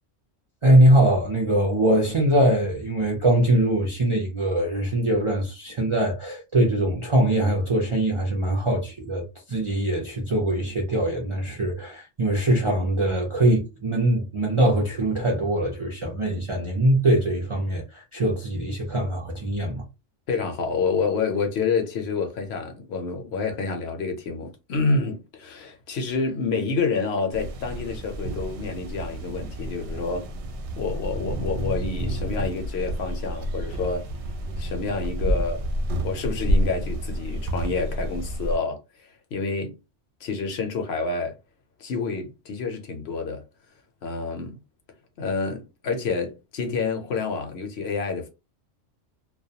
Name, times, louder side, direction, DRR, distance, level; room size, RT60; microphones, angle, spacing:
voice 1, 0.6-19.8, right 1 dB, 45° right, 0.4 m, -22 dB
voice 2, 20.3-30.3 30.8-34.1 34.6-35.7 36.0-39.8 40.2-41.3 41.8-43.4 44.0-44.6 45.2-48.3, left 4 dB, 65° left, 0.8 m, -28 dB
sound 1, 27.3-38.6, equal, 70° right, 0.8 m, -29 dB
2.3 x 2.1 x 2.7 m
omnidirectional pair, 1.3 m